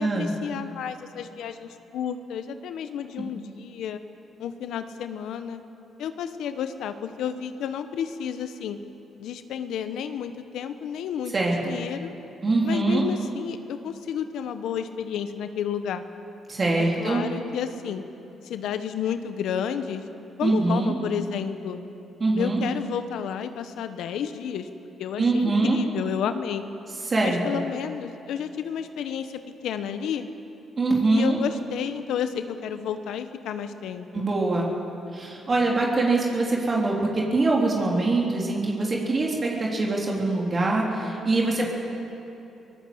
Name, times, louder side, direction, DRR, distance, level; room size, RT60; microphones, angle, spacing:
voice 1, 0.0-4.0 4.4-5.6 6.0-8.8 9.2-12.1 12.6-16.0 16.8-18.0 18.4-20.0 20.4-21.8 22.4-24.7 25.0-26.6 27.2-30.3 31.1-34.3 41.4-41.6, left 8 dB, 80° left, 9 dB, 1.1 m, -31 dB
voice 2, 11.3-11.8 12.4-13.1 16.5-17.2 20.4-20.9 22.2-22.6 25.2-25.8 27.1-27.6 30.8-31.4 34.1-34.7 35.1-41.6, right 2 dB, 35° right, -2 dB, 3.6 m, -23 dB
23.0 x 19.0 x 7.9 m, 3.0 s
cardioid pair, 90°, 0 cm